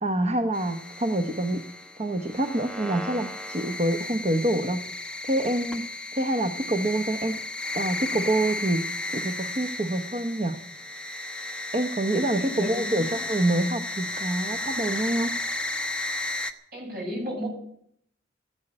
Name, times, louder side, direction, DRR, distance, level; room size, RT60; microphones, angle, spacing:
voice 1, 0.0-1.6 2.0-5.9 6.1-7.4 7.7-8.8 9.1-10.6 11.7-15.3, right 1 dB, 35° right, 6 dB, 0.9 m, -26 dB
sound 1, 0.5-16.5, left 2 dB, 5° left, 1.0 m, -34 dB
voice 2, 12.4-13.2 16.7-17.5, equal, 55° right, -1 dB, 7.5 m, -33 dB
15.0 x 10.5 x 8.7 m, 0.72 s
head